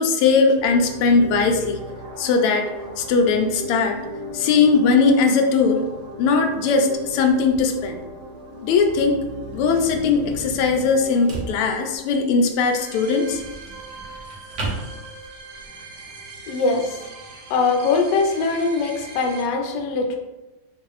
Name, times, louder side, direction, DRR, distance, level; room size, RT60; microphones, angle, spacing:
voice 1, 0.0-1.8 2.2-2.7 3.0-4.0 4.3-5.8 6.2-8.0 8.6-9.2 9.5-13.4, left 4 dB, 90° left, 4 dB, 1.5 m, -19 dB
sound 1, 0.6-19.4, right 1 dB, 85° right, 1.7 m, -38 dB
sound 2, 6.9-15.7, right 3 dB, 50° right, 0.9 m, -37 dB
voice 2, 16.5-17.0 17.5-20.2, left 4 dB, 70° left, 2 dB, 1.1 m, -22 dB
5.8 x 2.6 x 3.1 m, 1.1 s
omnidirectional pair, 2.3 m